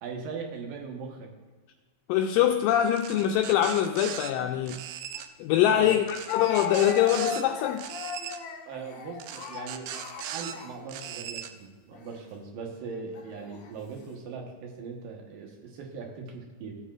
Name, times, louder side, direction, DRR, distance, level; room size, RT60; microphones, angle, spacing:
voice 1, 0.0-1.3 4.4-4.5 5.6-6.1 8.7-16.8, right 5 dB, 70° right, 1 dB, 2.9 m, -40 dB
voice 2, 2.1-4.8 5.4-7.9, left 11 dB, 80° left, 3 dB, 2.0 m, -24 dB
sound 1, 3.0-4.3 4.7-5.3 6.1-7.4 7.8-8.4 9.2-10.6 10.9-11.5, right 10 dB, 90° right, 2.5 m, -39 dB
Speech, 5.1-5.2 6.3-11.2 11.9-12.2 13.1-13.7, left 8 dB, 60° left, 2.2 m, -37 dB
15.0 x 8.2 x 2.5 m, 1.4 s
omnidirectional pair, 4.3 m